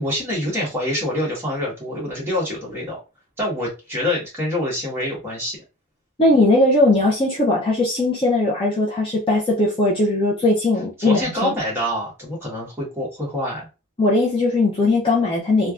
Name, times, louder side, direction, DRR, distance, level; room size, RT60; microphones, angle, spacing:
voice 1, 0.0-3.0 3.4-5.6 11.0-13.7, left 1 dB, 10° right, -5 dB, 1.2 m, -26 dB
voice 2, 6.2-11.5 14.0-15.7, left 2 dB, 25° left, -3 dB, 0.5 m, -19 dB
3.2 x 2.3 x 2.4 m, 0.29 s
head